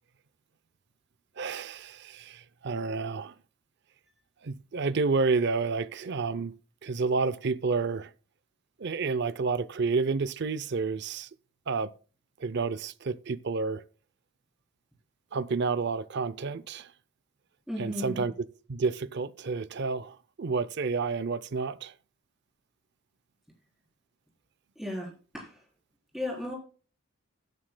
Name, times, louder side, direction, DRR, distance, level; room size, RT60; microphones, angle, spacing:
voice 1, 1.4-3.3 4.4-8.1 8.8-11.3 11.7-11.9 12.4-13.8 15.3-16.9 17.8-18.3 18.7-21.9, right 4 dB, 55° right, 0.5 m, -30 dB
voice 2, 17.7-18.3 24.8-25.6 26.1-26.5, left 1 dB, ahead, 4.1 m, -35 dB
16.5 x 9.5 x 2.2 m
head